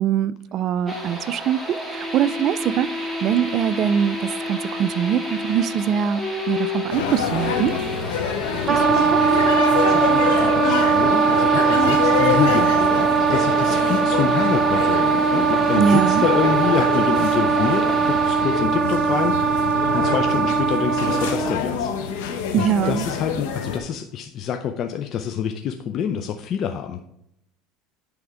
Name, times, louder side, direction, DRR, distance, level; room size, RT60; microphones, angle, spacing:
voice 1, 0.0-6.2 6.5-7.8 8.7-9.2 15.8-16.2 22.5-23.1, right 9 dB, 50° right, 16 dB, 0.3 m, -23 dB
sound 1, 0.9-18.6, left 1 dB, 5° right, 1.8 m, -32 dB
sound 2, 6.9-23.8, left 6 dB, 80° left, 1.0 m, -27 dB
voice 2, 8.4-9.0 9.6-27.1, left 8 dB, 50° left, 5 dB, 0.5 m, -27 dB
Wind instrument woodwind instrument, 8.7-21.6, right 5 dB, 30° right, 0.8 m, -20 dB
9.6 x 3.5 x 4.9 m, 0.77 s
supercardioid pair, 105°, 0 cm